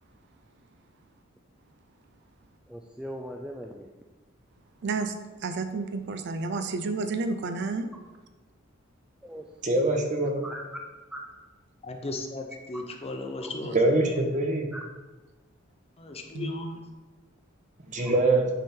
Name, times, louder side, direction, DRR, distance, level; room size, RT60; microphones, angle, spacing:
voice 1, 2.7-3.9 9.2-9.8 10.4-10.7 11.1-11.2 13.4-13.5 14.7-14.8, equal, 5° right, 1 dB, 0.3 m, -40 dB
voice 2, 4.8-5.1 5.4-7.9 16.3-16.5, right 3 dB, 60° right, 8 dB, 0.5 m, -30 dB
voice 3, 9.6-10.4 13.7-14.7 17.9-18.4, right 2 dB, 40° right, 2 dB, 1.1 m, -23 dB
voice 4, 11.8-13.8 16.0-16.8, left 2 dB, 30° left, 4 dB, 0.7 m, -36 dB
9.4 x 3.6 x 4.4 m, 1.2 s
head